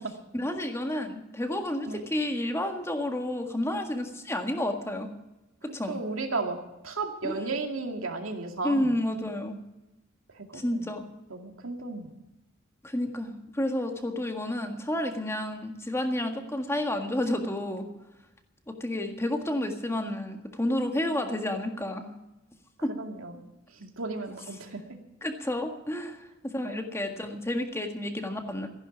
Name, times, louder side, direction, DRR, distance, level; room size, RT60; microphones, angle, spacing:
voice 1, 0.3-5.1 5.7-6.0 7.2-7.5 8.6-9.6 10.5-11.1 12.8-17.9 18.7-22.1 22.8-22.9 25.2-28.7, left 1 dB, 15° left, 5 dB, 1.7 m, -30 dB
voice 2, 5.9-6.6 6.8-8.9 10.4-10.8 11.3-12.1 22.9-23.3 23.8-24.8 26.6-26.8, right 3 dB, 85° right, 4 dB, 2.3 m, -34 dB
15.0 x 11.0 x 7.2 m, 0.97 s
head